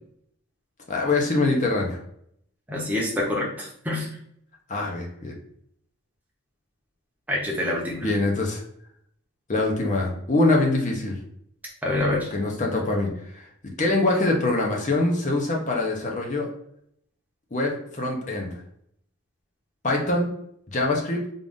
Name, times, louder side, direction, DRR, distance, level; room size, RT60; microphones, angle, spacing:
voice 1, 0.9-2.0 4.7-5.3 8.0-8.6 9.5-11.2 11.9-12.0 12.3-13.5 13.8-16.5 17.5-18.5 19.8-20.3 20.7-21.2, left 2 dB, 35° left, 0 dB, 0.7 m, -24 dB
voice 2, 2.7-4.1 7.3-8.0 11.8-12.3, left 1 dB, 5° right, -3 dB, 0.8 m, -26 dB
3.7 x 2.5 x 3.6 m, 0.70 s
head